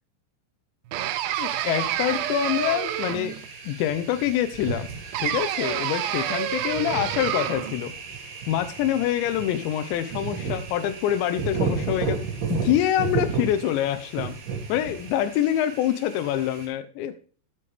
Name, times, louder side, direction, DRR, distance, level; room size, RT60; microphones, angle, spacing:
sound 1, 0.9-3.5 5.1-7.8, right 11 dB, 85° right, 2.1 m, -28 dB
sound 2, 1.3-16.7, right 5 dB, 65° right, 3.9 m, -34 dB
voice 1, 1.4-3.4 3.7-7.9 8.5-12.2 12.5-14.4 14.7-17.2, left 11 dB, 85° left, 9 dB, 2.9 m, -26 dB
10.5 x 8.4 x 3.4 m, 0.41 s
omnidirectional pair, 5.1 m